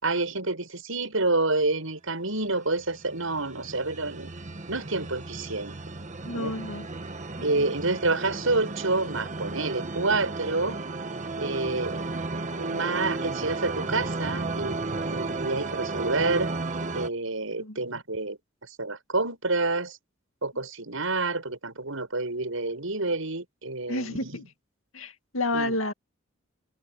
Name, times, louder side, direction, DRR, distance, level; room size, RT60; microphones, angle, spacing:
voice 1, 0.0-4.3 4.7-5.7 6.3-6.5 7.4-10.8 11.4-12.0 12.6-16.5 16.9-18.4 18.8-20.0 20.4-24.4 25.5-25.7, right 3 dB, 85° right, 6.7 m, -28 dB
sound 1, 2.7-17.1, right 3 dB, 35° right, 1.3 m, -34 dB
voice 2, 6.2-6.9 7.4-7.7 17.6-17.8 23.9-24.4 24.9-25.9, left 1 dB, 85° left, 2.3 m, -30 dB
head